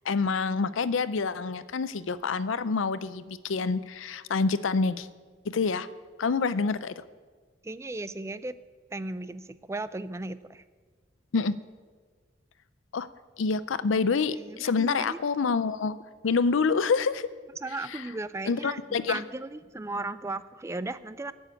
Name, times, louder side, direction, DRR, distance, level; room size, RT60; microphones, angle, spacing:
voice 1, 0.1-5.1 5.5-5.9 6.2-7.0 11.3-11.6 12.9-13.1 13.4-16.0 16.2-17.3 17.9-18.0 18.5-19.2, left 4 dB, 80° left, 15 dB, 0.5 m, -27 dB
voice 2, 7.6-8.6 8.9-10.6 14.3-15.2 17.6-21.3, right 2 dB, 15° right, 14 dB, 0.4 m, -36 dB
13.0 x 7.2 x 8.9 m, 1.5 s
head